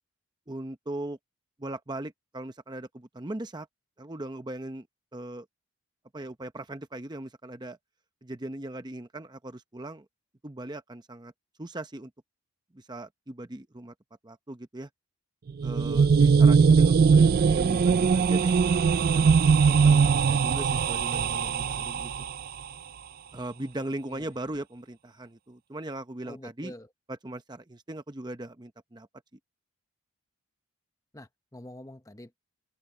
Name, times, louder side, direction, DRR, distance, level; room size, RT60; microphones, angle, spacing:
voice 1, 0.5-1.2 1.6-3.7 4.0-4.9 5.1-5.5 6.1-7.8 8.2-10.0 10.4-11.3 11.6-12.1 12.7-13.9 14.2-14.9 15.6-18.5 18.9-22.3 23.3-26.7 27.1-29.1, right 1 dB, 20° right, 0.7 m, -39 dB
sound 1, 15.5-22.5, right 5 dB, 40° right, 0.3 m, -21 dB
voice 2, 26.3-26.9 31.1-32.4, left 1 dB, 15° left, 0.9 m, -45 dB
head